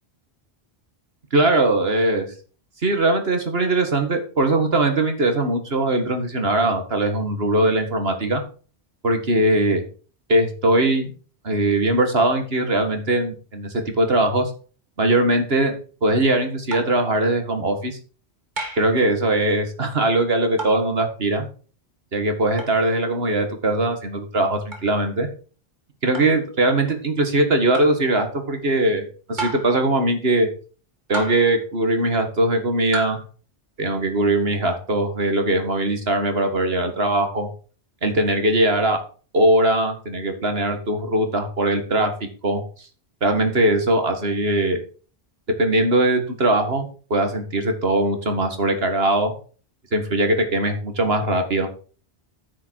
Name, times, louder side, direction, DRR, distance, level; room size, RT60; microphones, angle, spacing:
voice 1, 1.3-2.3 2.8-8.4 9.0-9.8 10.3-11.1 11.4-14.5 15.0-15.7 16.0-18.0 18.8-21.4 22.1-25.3 26.0-30.5 31.1-33.2 33.8-37.5 38.0-39.0 39.3-42.1 42.4-42.6 43.2-44.8 45.6-49.3 49.9-51.7, right 1 dB, 70° right, 6 dB, 2.2 m, -20 dB
sound 1, 16.7-17.0 18.6-19.0 20.6-20.9 22.6-22.8 24.7-24.9 26.1-26.4 27.7-28.0 29.4-29.8 31.1-31.6 32.9-33.2, right 2 dB, 45° right, 2.4 m, -32 dB
9.8 x 8.9 x 4.7 m, 0.39 s
omnidirectional pair, 1.1 m